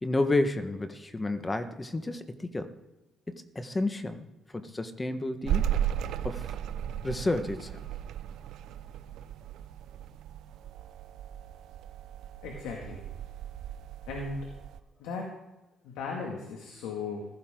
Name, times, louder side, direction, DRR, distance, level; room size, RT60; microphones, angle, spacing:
voice 1, 0.0-2.7 3.3-4.3 4.5-5.8 6.2-6.6 7.0-7.8, left 2 dB, 20° left, 8 dB, 1.4 m, -31 dB
sound 1, 5.4-14.8, right 10 dB, 80° right, 0.6 m, -35 dB
voice 2, 12.4-13.0 14.1-14.4 15.0-15.3 15.8-17.3, left 4 dB, 90° left, 0 dB, 2.2 m, -36 dB
16.0 x 14.0 x 3.9 m, 1.0 s
supercardioid pair, 70°, 0 cm